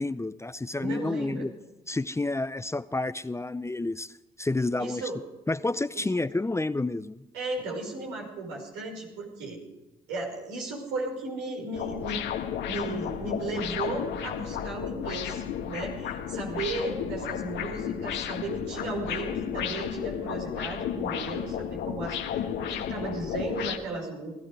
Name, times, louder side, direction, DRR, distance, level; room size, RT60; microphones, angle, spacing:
voice 1, 0.0-1.5 1.9-4.1 4.4-5.0 5.5-7.2, left 2 dB, 15° left, 15 dB, 0.6 m, -29 dB
voice 2, 0.8-1.5 4.8-5.2 5.9-6.1 7.3-9.6 10.1-12.2 12.6-24.3, right 2 dB, 80° right, -1 dB, 5.5 m, -35 dB
sound 1, 11.7-23.8, left 9 dB, 75° left, 1.4 m, -33 dB
20.0 x 14.5 x 4.9 m, 1.0 s
hypercardioid pair, 50°, 19 cm